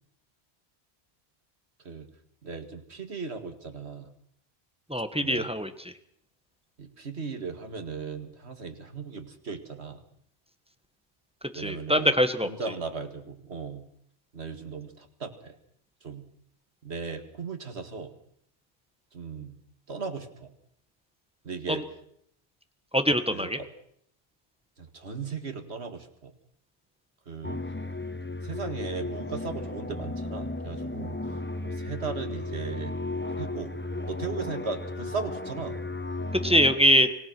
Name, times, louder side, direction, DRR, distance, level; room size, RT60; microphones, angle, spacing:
voice 1, 2.4-4.1 5.2-5.5 6.8-10.0 11.6-12.2 12.4-13.8 14.3-15.6 16.0-16.2 16.8-18.1 19.1-19.5 19.9-20.5 21.4-21.8 23.3-23.7 24.8-26.3 27.3-27.6 28.4-31.2 31.6-32.9 33.4-33.7 34.1-35.8, right 5 dB, 75° right, 7 dB, 2.3 m, -37 dB
voice 2, 4.9-5.7 11.5-12.5 21.7-21.8 22.9-23.6 36.4-37.1, equal, 5° right, 8 dB, 1.4 m, -23 dB
sound 1, 27.4-36.8, left 2 dB, 10° left, 0.8 m, -34 dB
25.5 x 18.0 x 6.2 m, 0.68 s
omnidirectional pair, 1.1 m